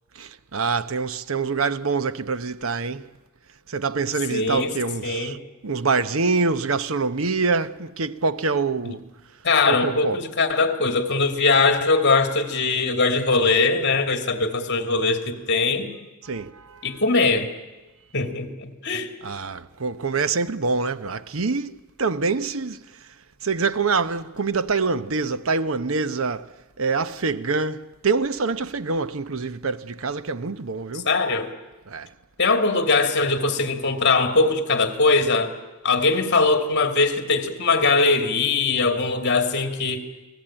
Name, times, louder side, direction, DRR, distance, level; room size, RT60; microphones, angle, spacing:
voice 1, 0.1-3.1 3.7-5.4 5.6-9.0 9.7-10.2 16.2-17.0 19.2-23.1 23.4-31.1 31.9-32.1, right 4 dB, 80° right, 0.9 m, -25 dB
voice 2, 4.3-4.7 5.0-5.4 8.8-9.0 9.4-15.9 16.8-17.5 18.1-19.1 30.9-31.5 32.4-35.5 35.8-40.0, left 3 dB, 55° left, 2.6 m, -21 dB
29.5 x 19.5 x 8.9 m
head